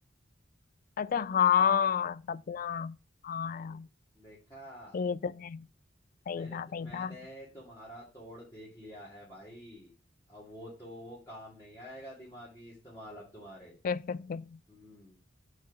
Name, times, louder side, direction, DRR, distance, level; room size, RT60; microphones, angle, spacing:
voice 1, 1.0-3.0 3.2-3.9 4.9-5.7 6.3-7.1 13.8-14.6, left 7 dB, 45° left, 0.3 m, -30 dB
voice 2, 3.5-3.8 4.1-5.0 6.3-9.9 10.3-13.8 14.7-15.2, equal, 15° left, 2.2 m, -48 dB
4.6 x 4.5 x 5.9 m
head